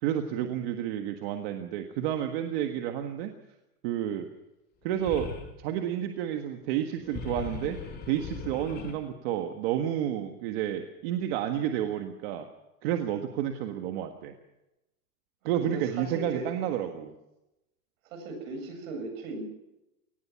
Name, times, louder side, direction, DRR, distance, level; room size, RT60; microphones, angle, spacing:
voice 1, 0.0-3.3 3.8-4.3 4.8-5.3 5.6-7.8 8.1-12.5 12.8-14.3 15.4-17.1, right 10 dB, 40° right, 6 dB, 1.7 m, -30 dB
sound 1, 4.9-5.5 6.9-8.9, left 5 dB, 20° left, 3.3 m, -39 dB
voice 2, 15.6-16.5 18.1-19.4, right 3 dB, 55° right, 6 dB, 7.7 m, -38 dB
23.0 x 19.0 x 5.9 m, 0.94 s
supercardioid pair, 170°, 46 cm